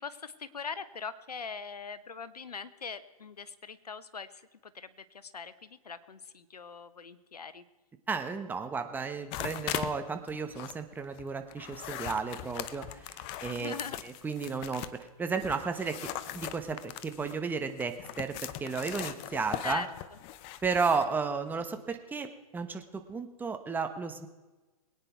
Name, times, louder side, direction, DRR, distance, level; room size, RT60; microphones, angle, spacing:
voice 1, 0.0-4.4 4.7-7.6 13.5-14.0 19.6-19.9, left 5 dB, 85° left, 14 dB, 1.1 m, -41 dB
voice 2, 8.1-13.7 14.0-14.8 15.2-16.1 16.3-19.8 20.6-24.3, right 5 dB, 10° right, 7 dB, 1.2 m, -33 dB
sound 1, 9.3-10.0 10.3-15.0 15.4-21.1, left 13 dB, 30° left, 0.7 m, -40 dB
22.0 x 9.6 x 4.6 m, 1.2 s
hypercardioid pair, 125°, 19 cm